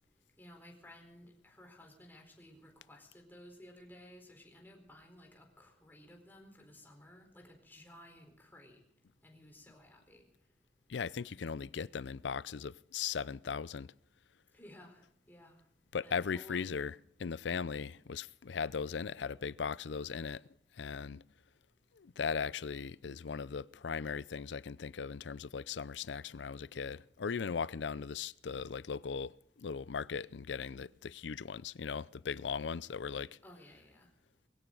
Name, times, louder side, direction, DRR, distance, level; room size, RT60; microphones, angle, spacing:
voice 1, 0.4-8.8 9.2-10.2 14.5-15.6 16.0-16.7 33.4-34.1, left 1 dB, 10° left, 4.1 m, -56 dB
voice 2, 10.9-13.9 15.9-16.9 17.2-20.4 20.8-21.2 22.0-29.3 29.6-33.3, left 6 dB, 85° left, 0.5 m, -38 dB
21.0 x 17.0 x 3.9 m
head